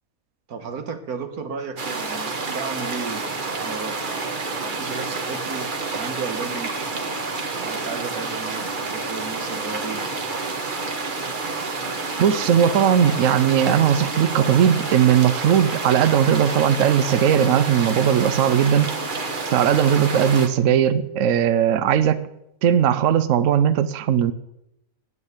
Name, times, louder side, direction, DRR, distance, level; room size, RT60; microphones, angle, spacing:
voice 1, 0.5-10.0, right 5 dB, 85° right, 7 dB, 1.8 m, -34 dB
sound 1, 1.8-20.5, right 3 dB, 35° right, 1.3 m, -29 dB
voice 2, 12.2-18.9 19.5-22.2 22.6-24.3, right 9 dB, 65° right, 13 dB, 0.9 m, -18 dB
9.6 x 9.6 x 8.1 m, 0.84 s
omnidirectional pair, 1.5 m